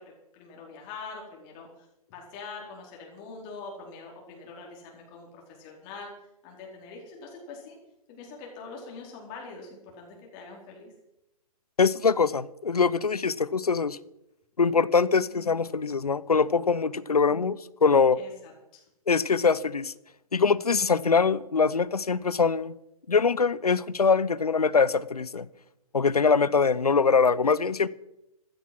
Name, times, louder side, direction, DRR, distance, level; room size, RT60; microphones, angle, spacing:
voice 1, 0.3-1.7 2.1-6.1 6.4-7.8 8.1-10.9 18.2-18.8, left 4 dB, 35° left, 4.6 m, -43 dB
voice 2, 11.8-14.0 14.6-18.2 19.1-19.9 20.3-22.7 23.1-25.5 25.9-27.9, left 5 dB, 80° left, 0.8 m, -23 dB
15.5 x 13.0 x 6.1 m
figure-of-eight pair, 125°, 19 cm